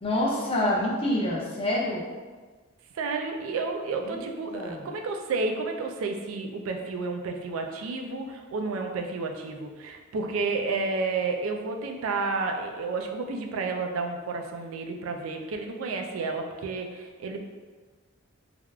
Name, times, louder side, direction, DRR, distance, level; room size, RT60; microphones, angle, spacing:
voice 1, 0.0-2.0 3.9-4.2 4.5-4.9, left 1 dB, 25° left, -3 dB, 0.5 m, -27 dB
voice 2, 2.9-17.4, right 3 dB, 75° right, 3 dB, 0.4 m, -31 dB
3.3 x 2.4 x 2.2 m, 1.4 s
head